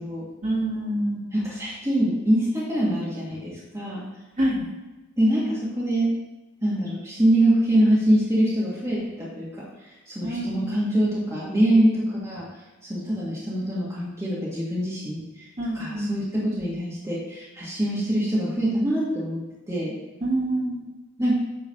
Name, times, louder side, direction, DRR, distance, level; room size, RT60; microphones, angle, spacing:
voice 1, 0.4-1.2 4.4-4.6 10.2-10.8 15.6-16.1 20.2-20.9, right 1 dB, 40° right, -5 dB, 2.1 m, -26 dB
voice 2, 1.3-4.1 5.2-6.1 6.6-9.7 10.1-12.5 12.9-15.5 15.7-19.4 19.7-19.9 21.2-21.4, right 1 dB, 15° right, -7 dB, 1.7 m, -24 dB
8.9 x 3.8 x 5.4 m, 1.1 s
head